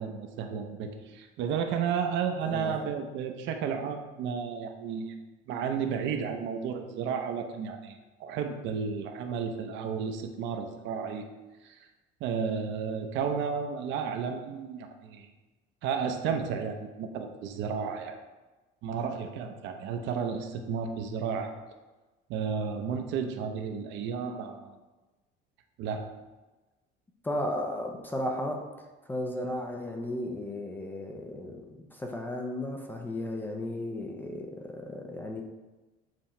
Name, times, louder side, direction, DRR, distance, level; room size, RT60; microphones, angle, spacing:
voice 1, 0.0-5.2 5.5-11.2 11.6-11.9 12.2-15.3 15.8-18.2 18.8-21.5 22.3-24.6 25.8-26.1, right 6 dB, 60° right, 5 dB, 0.7 m, -32 dB
voice 2, 2.4-2.9 27.2-35.4, left 1 dB, 10° left, 2 dB, 0.4 m, -35 dB
7.6 x 3.0 x 4.3 m, 1.2 s
cardioid pair, 175°, 21 cm